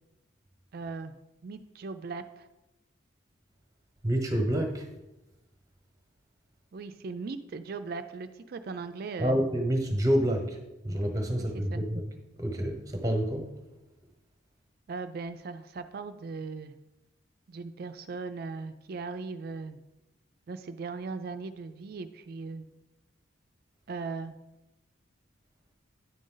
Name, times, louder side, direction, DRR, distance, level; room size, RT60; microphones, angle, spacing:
voice 1, 0.7-1.1 1.4-2.5 6.7-9.4 11.4-11.8 14.9-16.7 17.5-19.8 20.5-22.7 23.9-24.4, right 4 dB, 50° right, 0.4 m, -38 dB
voice 2, 4.0-4.9 9.2-10.6 10.8-12.0 12.4-13.5, equal, 15° right, 1.0 m, -28 dB
9.7 x 5.2 x 3.8 m
head